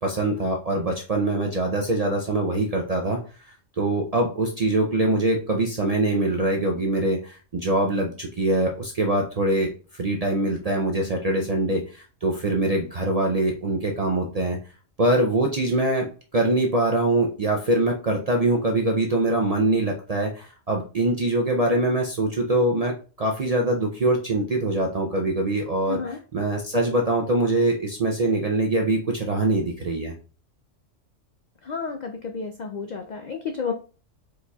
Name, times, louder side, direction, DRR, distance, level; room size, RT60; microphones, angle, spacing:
voice 1, 0.0-3.2 3.8-14.6 15.0-30.1, right 2 dB, 55° right, 0 dB, 0.4 m, -23 dB
voice 2, 25.9-26.2 31.6-33.7, left 5 dB, 85° left, 4 dB, 0.4 m, -31 dB
4.8 x 4.0 x 2.3 m, 0.37 s
omnidirectional pair, 1.3 m